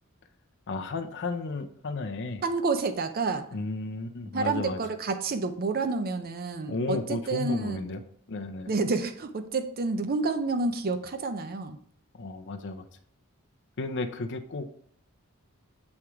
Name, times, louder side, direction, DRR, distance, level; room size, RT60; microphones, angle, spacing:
voice 1, 0.7-2.4 3.5-4.8 6.7-8.0 8.3-8.7 12.1-12.8 13.8-14.7, left 3 dB, 55° left, 6 dB, 0.6 m, -33 dB
voice 2, 2.4-3.5 4.3-7.8 8.7-11.8, right 3 dB, 45° right, 9 dB, 0.6 m, -29 dB
8.5 x 3.1 x 4.8 m, 0.63 s
head